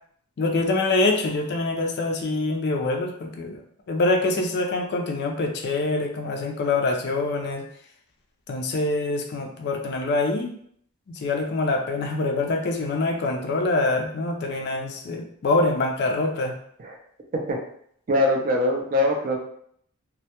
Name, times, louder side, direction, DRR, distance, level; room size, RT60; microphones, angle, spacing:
voice 1, 0.4-3.6 3.9-7.6 8.5-10.6 11.1-16.5, left 2 dB, 50° left, 2 dB, 0.3 m, -25 dB
voice 2, 18.1-19.4, left 1 dB, 40° right, 1 dB, 0.4 m, -22 dB
2.1 x 2.1 x 2.8 m, 0.65 s
head